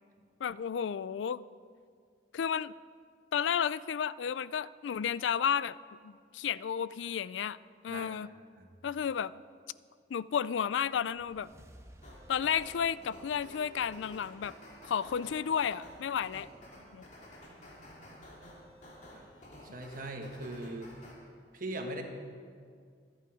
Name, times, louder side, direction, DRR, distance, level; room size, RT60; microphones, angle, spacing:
voice 1, 0.4-1.4 2.3-2.7 3.3-5.8 6.0-7.6 7.8-8.3 8.8-9.3 10.1-11.5 12.3-14.5 14.8-16.5 16.9-17.0, left 8 dB, 85° left, 18 dB, 0.4 m, -32 dB
sound 1, 10.8-15.4, equal, 15° right, 0.7 m, -58 dB
sound 2, 12.0-21.1, left 1 dB, 40° left, 3.2 m, -52 dB
voice 2, 19.6-20.9 21.5-22.0, right 1 dB, 45° right, 3 dB, 1.5 m, -40 dB
25.0 x 8.6 x 4.8 m, 2.1 s
head